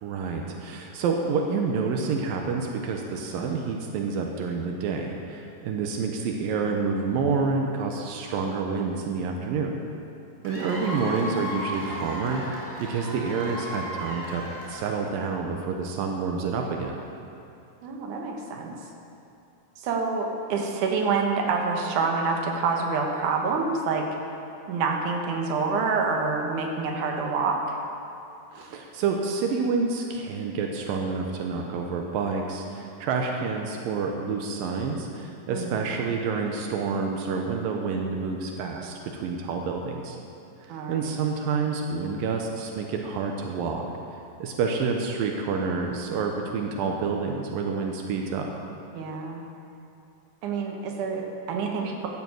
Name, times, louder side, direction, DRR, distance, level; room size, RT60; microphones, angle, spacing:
voice 1, 0.0-9.8 10.4-12.4 12.8-14.4 14.7-17.0 28.5-40.2 40.6-43.9 44.4-48.5, right 5 dB, 85° right, 2 dB, 2.6 m, -28 dB
Cheering / Applause / Crowd, 10.4-15.2, equal, 5° right, 3.1 m, -35 dB
voice 2, 17.8-18.8 19.8-24.1 24.7-27.8 35.5-35.8 40.7-41.1 48.9-49.4 50.4-52.1, right 4 dB, 65° right, 1 dB, 2.6 m, -27 dB
14.0 x 7.3 x 7.7 m, 2.7 s
omnidirectional pair, 4.0 m